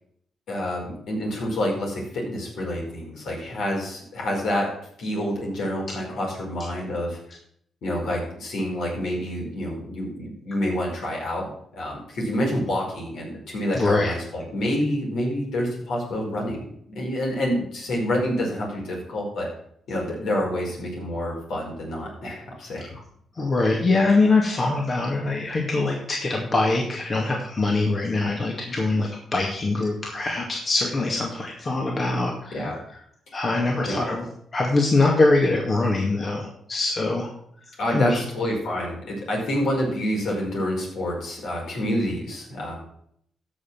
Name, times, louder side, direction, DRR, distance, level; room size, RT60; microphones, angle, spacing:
voice 1, 0.5-4.7 5.0-7.4 7.8-11.5 11.7-16.7 16.9-19.5 19.9-22.9 23.7-23.8 32.5-32.8 33.8-34.0 37.8-42.8, equal, 75° left, -2 dB, 5.0 m, -28 dB
voice 2, 13.7-14.1 23.4-32.7 33.3-34.2 34.5-37.3 37.9-38.2, left 2 dB, 45° left, -1 dB, 2.2 m, -23 dB
14.0 x 5.8 x 6.2 m, 0.68 s
supercardioid pair, 60°, 0 cm